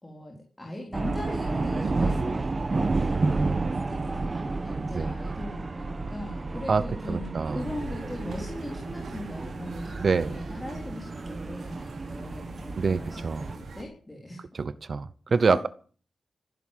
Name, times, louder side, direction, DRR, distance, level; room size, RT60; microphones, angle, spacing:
voice 1, 0.0-14.4 15.4-15.6, left 1 dB, 15° left, 0 dB, 3.9 m, -40 dB
sound 1, 0.9-13.6, right 3 dB, 30° right, 1.1 m, -31 dB
voice 2, 3.1-3.8 4.9-5.1 6.7-7.6 10.0-10.4 12.8-13.5 14.5-15.7, right 4 dB, 45° right, 15 dB, 0.7 m, -27 dB
sound 2, 7.6-13.8, right 3 dB, 75° right, 3.4 m, -42 dB
15.0 x 11.0 x 7.4 m, 0.43 s
wide cardioid pair, 150°, 0 cm